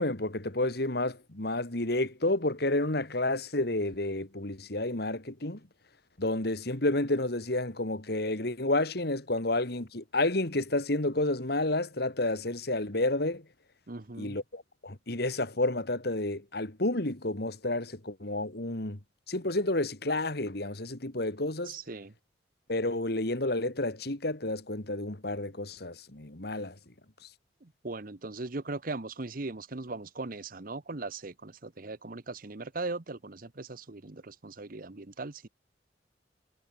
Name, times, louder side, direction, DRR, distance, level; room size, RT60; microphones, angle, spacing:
voice 1, 0.0-5.6 6.2-13.4 14.2-19.0 19.3-21.7 22.7-26.7, left 2 dB, 60° left, 2.5 m, -30 dB
voice 2, 13.9-14.4 21.6-22.1 27.6-35.5, right 3 dB, 50° right, 1.0 m, -39 dB
head